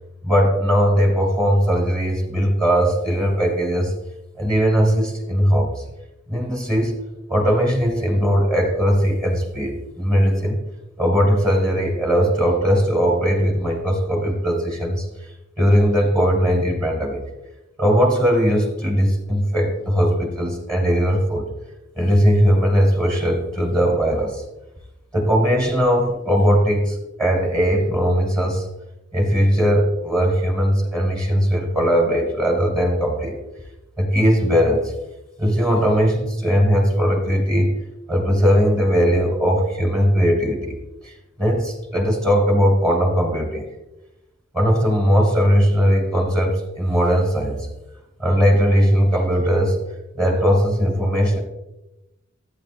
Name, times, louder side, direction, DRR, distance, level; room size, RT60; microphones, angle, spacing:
voice 1, 0.2-3.9 4.4-5.8 6.3-6.9 7.3-10.6 11.0-15.1 15.6-17.2 17.8-21.5 22.0-24.4 25.1-28.6 29.1-33.4 34.0-34.9 35.4-37.7 38.1-40.8 41.0-41.1 41.4-43.7 44.5-47.6 48.2-49.8 50.2-51.4, equal, 20° right, -1 dB, 1.5 m, -19 dB
13.5 x 8.8 x 2.5 m, 0.96 s
head